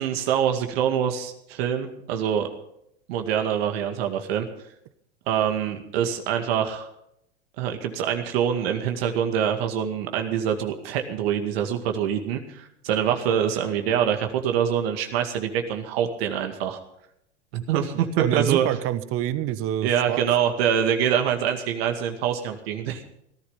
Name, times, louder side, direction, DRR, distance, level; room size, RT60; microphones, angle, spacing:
voice 1, 0.0-2.5 3.1-4.5 5.3-6.9 7.6-16.8 17.5-18.7 19.8-23.0, right 9 dB, 65° right, 5 dB, 2.2 m, -25 dB
voice 2, 18.2-20.2, right 12 dB, 40° right, 14 dB, 1.2 m, -26 dB
17.5 x 11.5 x 5.7 m, 0.77 s
hypercardioid pair, 105°, 33 cm